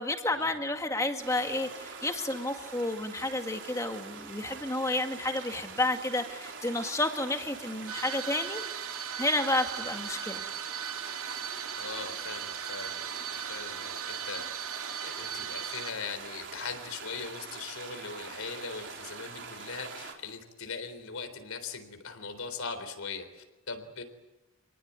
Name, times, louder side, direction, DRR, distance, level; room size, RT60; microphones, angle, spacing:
voice 1, 0.0-8.6 9.2-10.4, left 2 dB, 15° left, 5 dB, 1.9 m, -31 dB
sound 1, 1.2-20.1, right 5 dB, 55° right, 4.3 m, -44 dB
sound 2, 7.9-15.9, right 8 dB, 80° right, 1.4 m, -38 dB
voice 2, 11.8-13.1 13.4-14.0 14.3-14.4 15.0-24.0, left 5 dB, 80° left, 8 dB, 4.0 m, -40 dB
28.0 x 19.5 x 9.6 m, 1.1 s
head